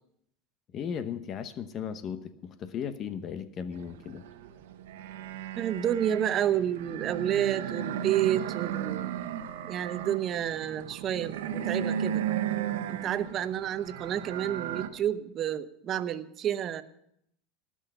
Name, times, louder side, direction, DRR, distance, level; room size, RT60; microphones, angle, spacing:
voice 1, 0.7-4.2, left 7 dB, 40° left, 12 dB, 0.9 m, -36 dB
sound 1, 3.7-14.9, right 10 dB, 85° right, 1.1 m, -35 dB
voice 2, 5.5-9.1 9.6-12.2 12.9-16.8, right 10 dB, 40° right, 13 dB, 0.9 m, -30 dB
18.0 x 6.3 x 8.0 m, 0.74 s
supercardioid pair, 110°, 0 cm